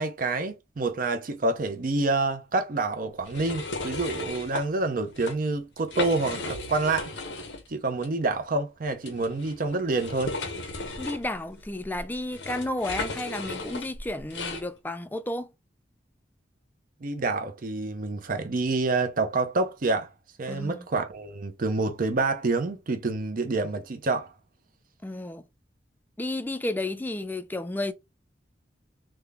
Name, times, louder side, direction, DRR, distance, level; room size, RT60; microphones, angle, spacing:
voice 1, 0.0-7.1 7.7-10.4 17.0-20.1 20.4-24.3, right 3 dB, 50° right, 0.6 m, -27 dB
sound 1, 3.2-4.6 5.1-5.3 5.8-7.7 8.0-8.1 9.0-14.6, left 2 dB, 85° left, 0.7 m, -35 dB
voice 2, 11.0-15.5 20.5-20.9 25.0-25.4 26.2-27.9, left 1 dB, 10° left, 0.3 m, -32 dB
3.6 x 2.1 x 3.4 m
head